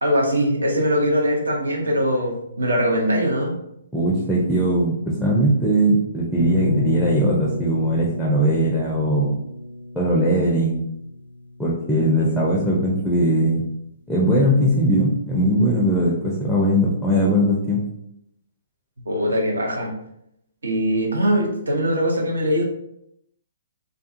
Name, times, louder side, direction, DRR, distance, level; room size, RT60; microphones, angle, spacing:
voice 1, 0.0-3.6 12.2-12.3 19.1-19.9 20.6-22.6, equal, 70° right, 0 dB, 0.7 m, -21 dB
voice 2, 3.9-9.3 10.0-10.8 11.6-13.6 14.1-17.8, right 1 dB, 5° left, -5 dB, 0.4 m, -20 dB
sound 1, 6.4-12.2, left 2 dB, 65° left, 0.4 m, -30 dB
2.4 x 2.4 x 2.5 m, 0.78 s
figure-of-eight pair, 125°, 0 cm